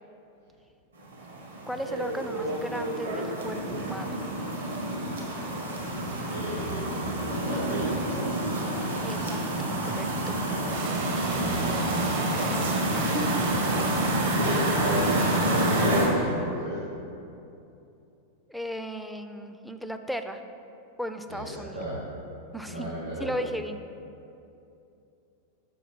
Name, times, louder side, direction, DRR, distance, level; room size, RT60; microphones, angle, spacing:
sound 1, 1.0-16.1, right 1 dB, 70° right, 1.3 m, -28 dB
voice 1, 1.7-4.2 9.0-10.4 12.9-13.4 18.5-20.4 21.0-21.9 22.5-22.9 23.2-23.8, equal, ahead, 7 dB, 0.4 m, -36 dB
voice 2, 6.3-7.2 7.4-7.9 11.2-11.7 14.1-16.8 21.3-22.0 22.7-23.3, equal, 90° right, -9 dB, 1.5 m, -32 dB
sound 2, 10.7-15.8, right 3 dB, 50° right, 0.8 m, -34 dB
7.6 x 4.8 x 4.3 m, 2.7 s
figure-of-eight pair, 90°, 0 cm